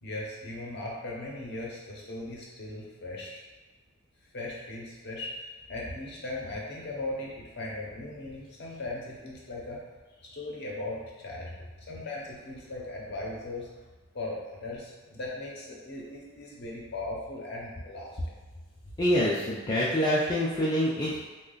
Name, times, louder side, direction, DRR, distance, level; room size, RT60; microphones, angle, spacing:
voice 1, 0.0-3.4 4.3-9.8 10.2-11.5 11.9-13.7 14.1-18.3, left 2 dB, 50° left, -3 dB, 0.7 m, -38 dB
voice 2, 19.0-21.3, equal, 20° left, -6 dB, 0.3 m, -26 dB
3.1 x 2.2 x 3.8 m, 1.3 s
head